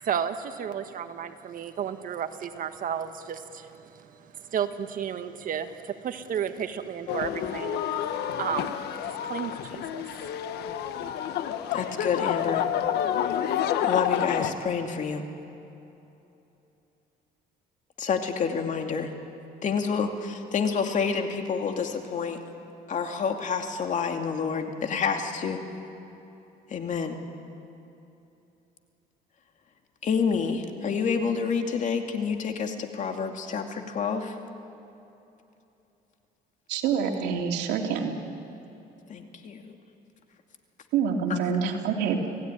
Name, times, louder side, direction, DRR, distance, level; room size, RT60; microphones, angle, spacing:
voice 1, 0.0-10.0, right 8 dB, 55° right, 8 dB, 1.7 m, -33 dB
sound 1, 7.1-14.5, left 10 dB, 75° left, 1.4 m, -29 dB
voice 2, 11.7-12.7 13.8-15.2 18.0-19.1 19.6-22.4 22.9-25.6 26.7-27.2 30.0-34.4 39.1-39.7 41.3-41.4, left 6 dB, 45° left, 4 dB, 2.6 m, -28 dB
voice 3, 36.7-38.1 40.9-42.3, right 7 dB, 90° right, 2 dB, 2.9 m, -26 dB
29.5 x 17.0 x 9.9 m, 2.9 s
cardioid pair, 110°, 17 cm